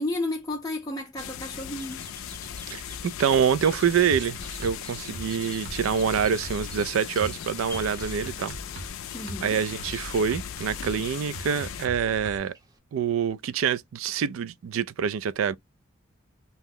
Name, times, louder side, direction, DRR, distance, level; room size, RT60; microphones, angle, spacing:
voice 1, 0.0-2.0 9.1-9.6, left 2 dB, 20° left, 0.4 m, -32 dB
sound 1, 1.2-11.9, left 9 dB, 80° left, 0.3 m, -38 dB
Bird vocalization bird call bird song, 1.4-12.8, right 1 dB, 20° right, 0.6 m, -50 dB
voice 2, 2.7-8.6 9.4-12.5 12.9-15.5, right 7 dB, 85° right, 0.3 m, -26 dB
sound 2, 4.1-12.4, right 1 dB, 55° right, 0.7 m, -40 dB
2.8 x 2.0 x 3.6 m
head